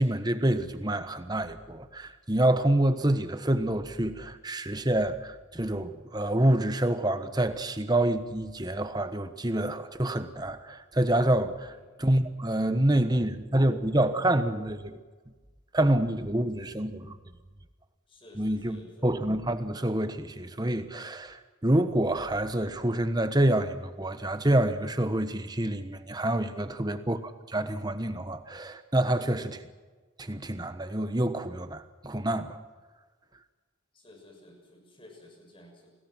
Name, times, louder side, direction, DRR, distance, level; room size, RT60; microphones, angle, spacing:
voice 1, 0.0-11.7 12.0-15.0 15.7-17.2 18.4-29.6 30.2-32.6, right 1 dB, 20° right, 1.2 m, -27 dB
voice 2, 18.1-19.1 33.9-35.9, left 1 dB, 25° left, 6.6 m, -53 dB
28.5 x 21.0 x 6.1 m
head